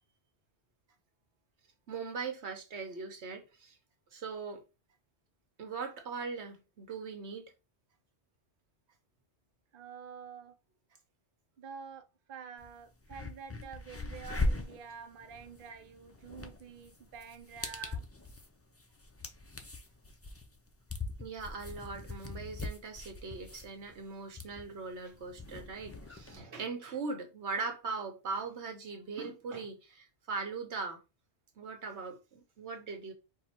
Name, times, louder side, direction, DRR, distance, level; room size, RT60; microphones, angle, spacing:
voice 1, 1.9-3.8 4.1-4.6 5.6-7.5 21.2-31.0 31.6-33.1, right 4 dB, 85° right, 1.3 m, -40 dB
voice 2, 9.7-10.6 11.6-18.0, right 6 dB, 55° right, 0.8 m, -48 dB
sound 1, 12.6-12.7 13.0-26.4, left 2 dB, 20° left, 0.4 m, -40 dB
4.7 x 2.4 x 4.3 m
omnidirectional pair, 1.1 m